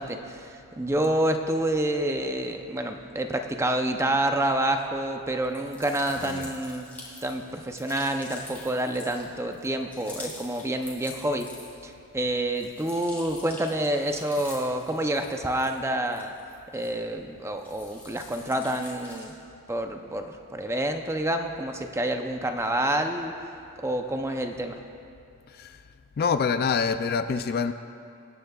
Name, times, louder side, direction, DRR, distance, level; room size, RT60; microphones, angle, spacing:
voice 1, 0.0-6.9 7.2-11.5 11.8-16.3 16.7-19.3 19.7-23.3 23.8-24.8, right 1 dB, 10° right, 5 dB, 0.6 m, -28 dB
sound 1, 5.5-11.9 12.3-17.2 17.5-19.4, left 2 dB, 5° left, 2.4 m, -45 dB
voice 2, 6.2-6.5 25.5-25.8 26.2-27.7, left 5 dB, 45° left, 10 dB, 0.3 m, -26 dB
23.0 x 10.0 x 2.4 m, 2.7 s
head